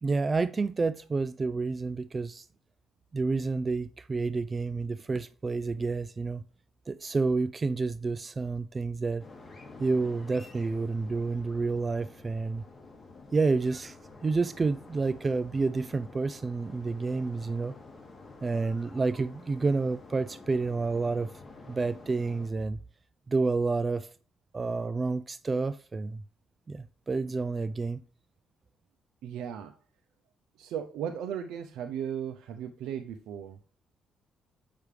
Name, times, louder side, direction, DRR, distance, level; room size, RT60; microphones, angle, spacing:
voice 1, 0.0-2.5 3.1-6.4 6.9-9.2 9.8-12.6 13.3-14.0 14.2-17.8 18.4-21.3 21.7-22.8 23.3-24.1 24.5-26.2 26.7-28.0, right 3 dB, 30° right, 0.3 m, -29 dB
sound 1, 9.2-22.5, left 3 dB, 25° left, 2.9 m, -50 dB
voice 2, 29.2-29.7 30.6-33.6, right 9 dB, 85° right, 0.5 m, -36 dB
8.3 x 5.9 x 3.3 m
cardioid pair, 90°, 0 cm